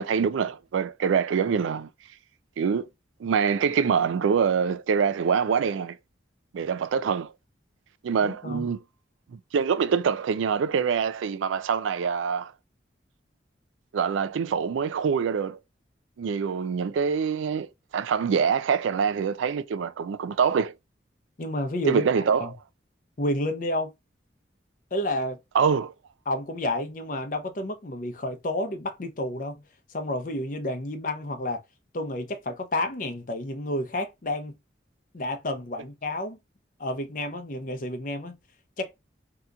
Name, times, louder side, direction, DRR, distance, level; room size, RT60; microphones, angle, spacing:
voice 1, 0.0-1.9 2.6-2.9 3.2-6.0 6.5-7.3 8.0-8.8 9.3-12.5 13.9-15.6 16.2-17.7 17.9-20.7 21.9-22.5 25.5-25.9, right 6 dB, 90° right, 0.3 m, -25 dB
voice 2, 8.2-8.7 21.4-22.5 23.2-23.9 24.9-25.4 26.3-29.6 29.9-31.6 31.9-34.5 35.1-36.4 36.8-38.4 38.8-38.9, left 1 dB, 45° left, 0.6 m, -30 dB
2.8 x 2.3 x 3.7 m
head